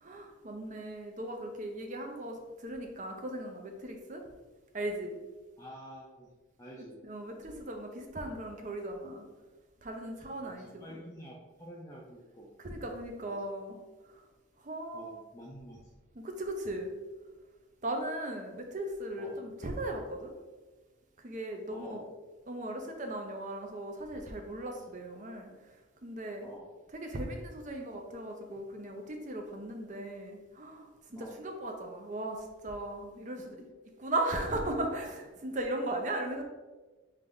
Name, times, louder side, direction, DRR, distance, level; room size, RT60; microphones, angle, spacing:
voice 1, 0.0-4.2 4.7-5.2 7.0-9.3 9.8-11.0 12.6-13.8 14.0-14.2 14.6-15.2 16.2-16.9 17.8-20.3 21.2-22.0 22.5-25.5 26.0-26.5 27.0-33.5 34.0-36.4, right 1 dB, 40° right, 3 dB, 0.6 m, -37 dB
voice 2, 5.6-6.3 6.6-7.0 10.4-12.6 13.2-13.5 14.9-15.9 19.2-19.5 21.7-22.0 24.8-24.9 25.5-25.6 26.4-26.7 31.2-31.4 33.6-33.7, equal, 15° left, -5 dB, 0.4 m, -49 dB
3.8 x 3.3 x 3.5 m, 1.3 s
head